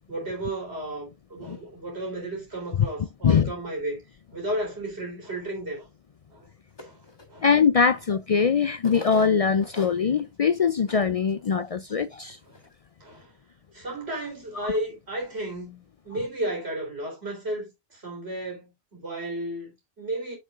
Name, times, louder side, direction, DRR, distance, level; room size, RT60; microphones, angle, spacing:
voice 1, 0.1-4.0 4.3-5.9 6.3-6.5 6.8-7.0 7.3-7.5 12.5-12.6 13.0-13.3 13.7-20.4, right 1 dB, 80° right, 4.0 m, -33 dB
sound 1, 6.8-7.2 8.0-8.1 8.8-10.3 10.6-10.7 10.9-11.1 11.6-11.7 12.3-12.7, left 3 dB, 25° left, 1.6 m, -40 dB
voice 2, 7.4-12.4 14.6-14.7, left 6 dB, 55° left, 0.4 m, -22 dB
7.8 x 6.5 x 2.5 m
omnidirectional pair, 1.1 m